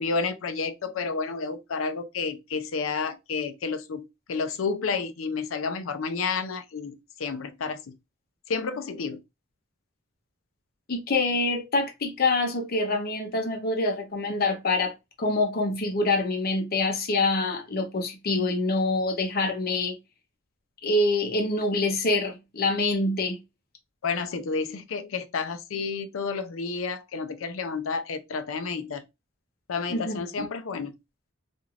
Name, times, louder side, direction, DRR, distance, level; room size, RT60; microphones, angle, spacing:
voice 1, 0.0-8.0 8.5-9.2 24.0-29.0 29.7-31.0, left 4 dB, 80° left, 0.5 m, -30 dB
voice 2, 10.9-14.9 15.2-19.9 20.8-23.4 29.9-30.2, left 2 dB, 50° left, 0.7 m, -25 dB
3.2 x 2.5 x 2.3 m
head